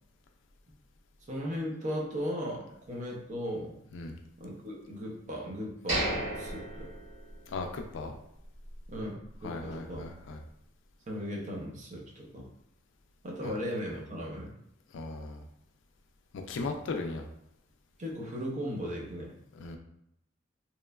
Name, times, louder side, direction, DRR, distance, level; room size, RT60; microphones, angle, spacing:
voice 1, 1.3-3.7 4.4-6.9 8.9-10.1 11.1-12.5 13.2-14.5 18.0-19.3, equal, 40° right, -2 dB, 0.6 m, -37 dB
sound 1, 5.9-7.8 8.1-8.2 8.7-8.9, right 1 dB, 85° right, 1.4 m, -34 dB
voice 2, 7.5-8.1 9.4-10.4 13.4-13.5 14.9-15.4 16.3-17.2 19.6-19.8, left 3 dB, 70° left, 4 dB, 0.4 m, -37 dB
2.9 x 2.1 x 2.3 m, 0.77 s
head